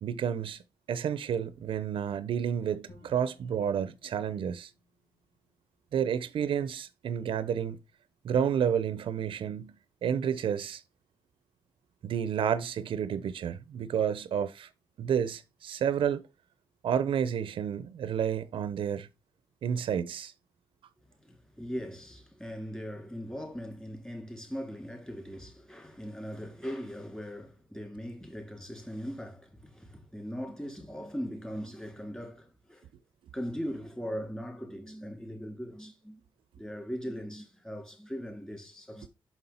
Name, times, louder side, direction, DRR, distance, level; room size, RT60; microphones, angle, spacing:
voice 1, 0.0-0.6 0.9-4.7 5.9-7.8 8.2-9.7 10.0-10.8 12.0-14.7 15.0-16.2 16.8-19.1 19.6-20.3, right 8 dB, 80° right, 0.6 m, -30 dB
Bowed string instrument, 2.9-6.0, left 2 dB, 65° left, 3.0 m, -60 dB
voice 2, 21.2-32.9 33.3-36.2 36.6-39.1, equal, 10° left, 3.2 m, -40 dB
6.1 x 5.5 x 4.3 m
cardioid pair, 85°, 9 cm